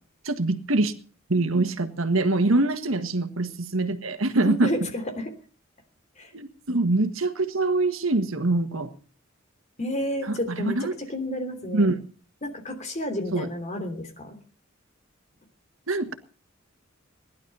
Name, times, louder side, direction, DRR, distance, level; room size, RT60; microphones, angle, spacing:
voice 1, 0.2-0.9 1.3-4.7 6.3-8.9 10.2-10.9 11.7-11.9 13.3-13.5 15.9-16.1, right 2 dB, 85° right, 9 dB, 1.6 m, -24 dB
voice 2, 4.3-5.3 6.2-6.3 9.8-11.9 12.4-14.4, left 1 dB, 35° left, 6 dB, 3.1 m, -31 dB
18.5 x 11.5 x 5.5 m, 0.41 s
head